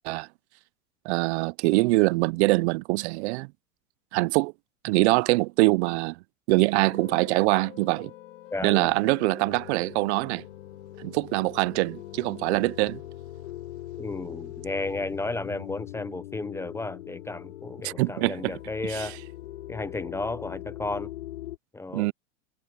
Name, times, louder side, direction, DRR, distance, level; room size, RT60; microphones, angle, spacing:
voice 1, 1.1-3.5 4.1-4.5 4.8-6.2 6.5-8.1 8.6-10.4 11.0-13.0 17.8-18.5 18.8-19.2 21.9-22.1, right 23 dB, 65° right, 0.5 m, -24 dB
sound 1, 6.7-21.6, left 14 dB, 90° left, 4.5 m, -42 dB
voice 2, 8.5-8.9 14.0-19.2 19.7-21.1 21.7-22.1, left 2 dB, 10° left, 0.5 m, -33 dB
supercardioid pair, 130°, 36 cm